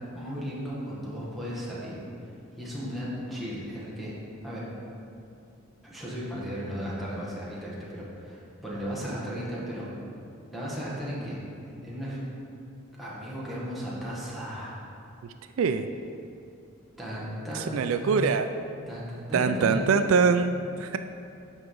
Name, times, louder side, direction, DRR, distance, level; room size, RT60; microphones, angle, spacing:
voice 1, 0.0-2.0 2.6-4.1 4.4-4.7 5.8-9.9 10.5-11.4 11.7-12.2 13.0-14.8 17.0-18.3 18.9-20.0, equal, ahead, -8 dB, 1.7 m, -35 dB
voice 2, 15.2-15.9 17.5-18.5 19.3-21.0, right 5 dB, 80° right, 9 dB, 0.4 m, -24 dB
12.5 x 4.9 x 3.8 m, 2.6 s
head